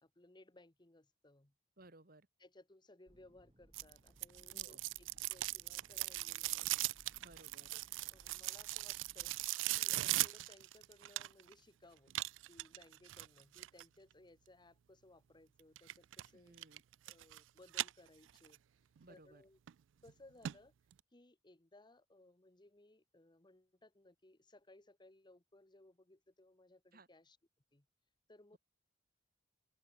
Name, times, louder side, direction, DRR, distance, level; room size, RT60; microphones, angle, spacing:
voice 1, 0.0-1.5 2.4-6.9 7.7-9.3 9.7-12.1 12.5-16.6 17.1-18.6 19.1-19.6 20.0-20.7 21.1-27.4 27.7-27.8 28.3-28.6, left 2 dB, 25° left, 1.3 m, -63 dB
voice 2, 1.8-2.3 4.5-4.8 7.2-7.7 16.3-16.8 19.0-19.4 26.9-27.1, right 2 dB, 50° right, 3.1 m, -60 dB
sound 1, 3.1-9.5, equal, 30° right, 2.3 m, -66 dB
sound 2, 3.7-11.5 12.1-13.8 15.8-16.3 16.6-17.4 17.7-18.6 19.0-19.1 19.7-19.8 20.1-20.2 20.4-20.5 20.9-21.0, right 17 dB, 90° right, 0.4 m, -39 dB
open air
head